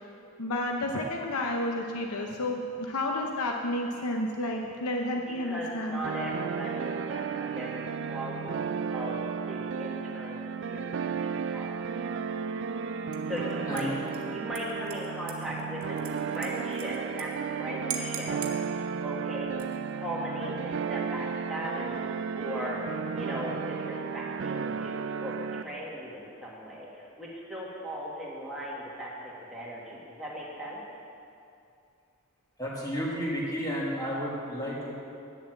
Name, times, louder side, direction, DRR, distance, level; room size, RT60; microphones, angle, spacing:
voice 1, 0.4-6.0, left 1 dB, 90° left, 1 dB, 0.8 m, -31 dB
voice 2, 5.3-11.7 12.9-13.9 14.3-17.3 17.6-18.4 19.0-19.5 19.9-30.8, equal, ahead, -6 dB, 1.9 m, -38 dB
sound 1, 6.0-25.6, right 6 dB, 55° right, 0.3 m, -34 dB
Dishes pots and pans / Liquid, 13.1-13.4 13.8-17.3 17.5-17.6 17.9-18.6 19.4-19.9, right 7 dB, 85° right, 1.2 m, -41 dB
voice 3, 13.7-14.3 32.6-34.9, equal, 15° left, -5 dB, 1.9 m, -32 dB
9.4 x 7.1 x 7.6 m, 2.6 s
head